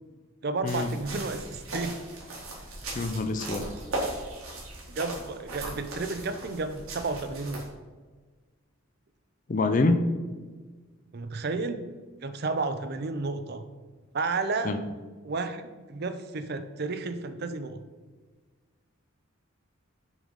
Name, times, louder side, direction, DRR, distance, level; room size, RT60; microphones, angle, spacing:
voice 1, 0.4-1.9 4.9-7.7 11.1-11.9 12.2-13.6 14.1-14.8 15.2-15.6 15.9-17.8, right 3 dB, 45° right, 10 dB, 0.5 m, -32 dB
sound 1, 0.7-7.7, right 1 dB, 75° right, 1.9 m, -38 dB
voice 2, 2.9-3.7 9.5-10.1 14.6-14.8, left 2 dB, 35° left, 9 dB, 0.4 m, -25 dB
6.1 x 3.9 x 5.1 m, 1.4 s
head